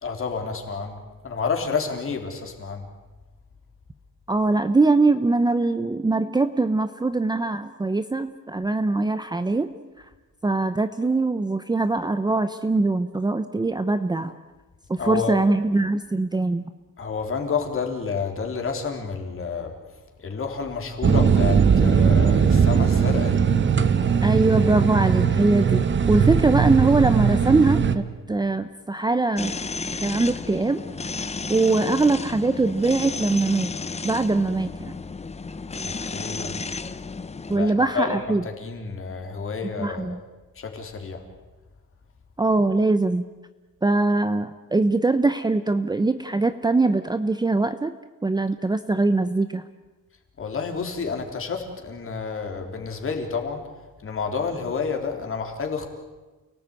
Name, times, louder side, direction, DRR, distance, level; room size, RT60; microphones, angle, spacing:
voice 1, 0.0-2.9 15.0-15.4 17.0-19.7 20.2-23.5 35.8-36.6 37.5-40.2 40.6-41.2 50.4-53.6 54.0-55.9, left 5 dB, 40° left, 4 dB, 3.9 m, -30 dB
voice 2, 4.3-9.7 10.4-14.4 14.9-16.7 24.2-29.5 30.0-30.9 31.1-33.7 34.0-34.9 37.5-38.4 39.8-40.2 42.4-43.3 43.8-49.6, right 3 dB, 10° right, 10 dB, 0.7 m, -22 dB
sound 1, 21.0-28.0, right 6 dB, 35° right, 1.3 m, -19 dB
sound 2, 29.4-37.6, left 4 dB, 20° left, 0.8 m, -33 dB
29.5 x 18.0 x 9.1 m, 1.2 s
cardioid pair, 155°, 33 cm